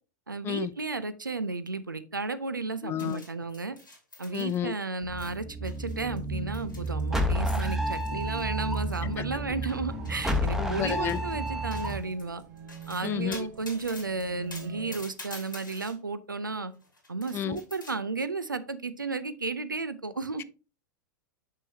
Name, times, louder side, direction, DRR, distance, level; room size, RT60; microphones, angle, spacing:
voice 1, 0.3-3.8 4.2-12.4 12.9-16.7 17.1-20.4, right 3 dB, 90° right, 0.5 m, -33 dB
voice 2, 2.8-3.2 4.3-4.7 9.2-9.3 10.6-11.2 13.0-13.5 17.3-17.6 20.4-20.5, left 10 dB, 25° left, 0.3 m, -31 dB
sound 1, 3.0-4.8 5.1-5.3 5.6-9.1 9.7-10.6 10.9-11.3 11.7-16.0 16.7-17.9, left 2 dB, 90° left, 2.3 m, -47 dB
sound 2, 5.0-12.0, equal, 5° right, 0.9 m, -31 dB
sound 3, 9.9-15.0, right 7 dB, 65° right, 1.2 m, -46 dB
6.2 x 5.7 x 2.7 m
figure-of-eight pair, 90°, 10 cm